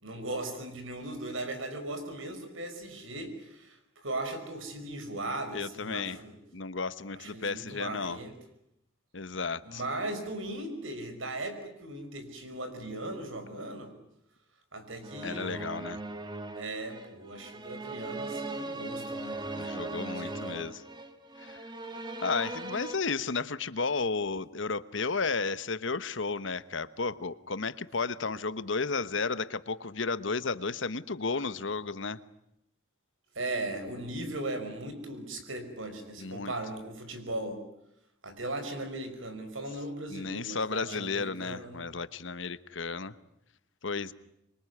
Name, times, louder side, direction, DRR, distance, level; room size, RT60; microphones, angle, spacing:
voice 1, 0.0-6.4 7.2-8.4 9.6-14.0 14.7-15.6 16.5-19.5 20.2-20.7 33.4-37.6 38.2-41.9, right 2 dB, 85° right, 8 dB, 5.4 m, -38 dB
voice 2, 5.5-6.2 6.5-8.2 9.1-9.8 15.2-16.0 19.5-20.8 21.4-21.6 22.2-32.2 36.2-36.5 40.1-43.1 43.8-44.1, left 4 dB, 70° left, 14 dB, 1.1 m, -33 dB
sound 1, 15.0-23.0, right 2 dB, 20° right, 1.9 m, -39 dB
26.0 x 23.5 x 9.6 m, 0.80 s
head